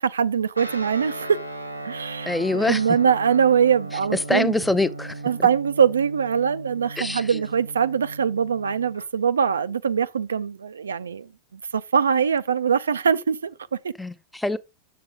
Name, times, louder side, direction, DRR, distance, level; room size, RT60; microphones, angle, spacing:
voice 1, 0.0-1.4 1.8-4.5 5.2-11.3 11.7-13.9, right 7 dB, 70° right, 0.3 m, -22 dB
Guitar, 0.5-9.1, right 2 dB, 85° right, 0.9 m, -37 dB
voice 2, 2.3-2.8 4.3-5.1 7.0-7.4 14.0-14.6, left 2 dB, 5° left, 0.5 m, -24 dB
7.4 x 7.3 x 3.6 m
figure-of-eight pair, 90°, 0 cm